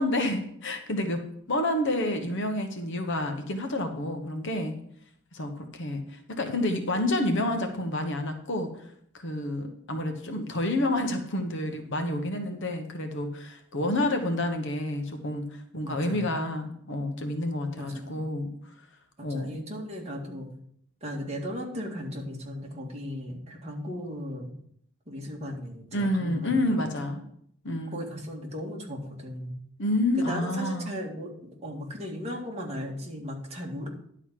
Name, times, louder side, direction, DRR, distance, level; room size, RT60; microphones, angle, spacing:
voice 1, 0.0-4.7 5.3-8.7 9.1-15.5 15.7-18.5 19.2-19.6 25.9-27.2 27.6-28.0 29.8-30.9, left 1 dB, 55° left, 5 dB, 1.3 m, -29 dB
voice 2, 15.9-16.3 17.8-18.2 19.2-20.5 21.0-24.5 25.1-27.1 27.9-29.5 30.2-33.9, equal, 30° right, -1 dB, 2.0 m, -37 dB
11.0 x 4.1 x 7.5 m, 0.67 s
head